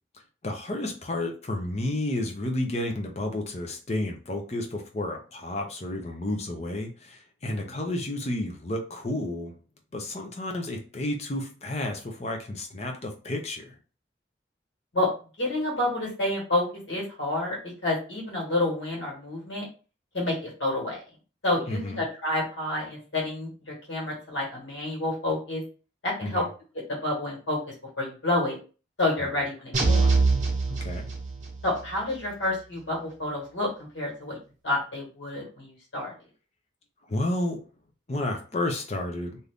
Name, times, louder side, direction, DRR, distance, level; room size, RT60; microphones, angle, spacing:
voice 1, 0.4-9.5 9.9-13.8 21.7-22.0 26.2-26.5 29.2-29.3 30.7-31.1 37.1-37.6 38.1-39.4, left 1 dB, 35° left, 3 dB, 0.6 m, -31 dB
voice 2, 15.4-19.7 20.1-21.0 21.4-25.6 26.0-26.4 26.9-28.6 29.0-30.2 31.6-36.1, left 2 dB, 85° left, -2 dB, 1.6 m, -29 dB
sound 1, 29.7-31.6, right 3 dB, 40° right, 0.8 m, -23 dB
2.7 x 2.5 x 3.4 m, 0.36 s
head